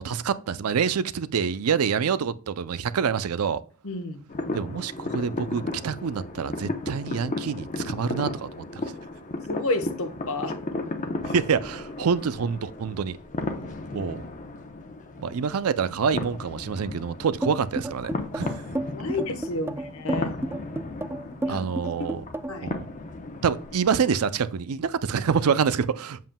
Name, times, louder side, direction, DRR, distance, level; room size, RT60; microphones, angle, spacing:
voice 1, 0.0-3.6 4.5-8.9 11.2-13.2 13.9-14.2 15.2-18.6 21.5-22.2 22.6-22.9 23.4-26.2, right 6 dB, 85° right, 0.5 m, -26 dB
voice 2, 3.8-4.2 9.5-10.6 13.8-14.1 18.9-20.3 21.4-21.7 22.0-22.7, left 2 dB, 70° left, 1.1 m, -31 dB
sound 1, 4.3-23.9, left 2 dB, 35° left, 0.8 m, -35 dB
sound 2, 17.4-22.7, right 1 dB, 10° right, 0.3 m, -31 dB
7.5 x 7.3 x 2.2 m
head